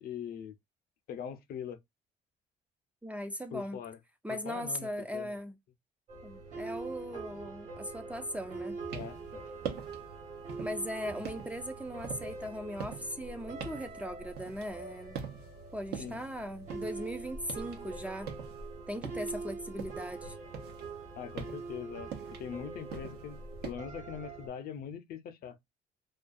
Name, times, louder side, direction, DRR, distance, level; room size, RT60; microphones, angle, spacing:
voice 1, 0.0-0.5 1.1-1.8 3.5-4.0 4.3-5.4 8.9-9.4 16.0-16.2 21.2-22.1 22.4-25.6, left 8 dB, 60° left, 0.5 m, -42 dB
voice 2, 3.0-3.8 4.2-5.6 6.2-8.8 10.6-15.2 15.7-18.3 18.9-20.4, equal, 10° right, 0.3 m, -39 dB
sound 1, 6.1-24.5, right 3 dB, 50° right, 1.2 m, -44 dB
sound 2, 8.7-9.3 9.6-10.1 10.5-10.9 11.2-14.9 15.1-15.6 15.9-17.8 18.1-20.1 20.5-23.7, right 7 dB, 80° right, 0.8 m, -43 dB
2.4 x 2.3 x 2.4 m
cardioid pair, 110°, 17 cm